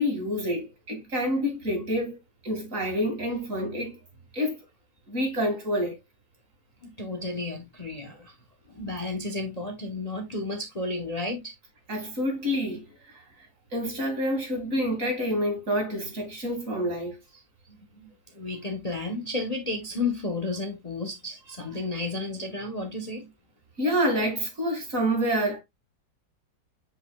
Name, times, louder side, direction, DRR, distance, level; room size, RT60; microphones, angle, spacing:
voice 1, 0.0-2.2 2.4-4.0 4.3-4.6 5.1-6.0 11.9-13.2 13.7-17.2 23.8-25.6, equal, 50° right, 2.6 m, -28 dB
voice 2, 6.8-8.4 8.7-11.5 17.3-23.3, left 2 dB, 25° left, 1.0 m, -33 dB
7.7 x 5.6 x 2.3 m
omnidirectional pair, 1.9 m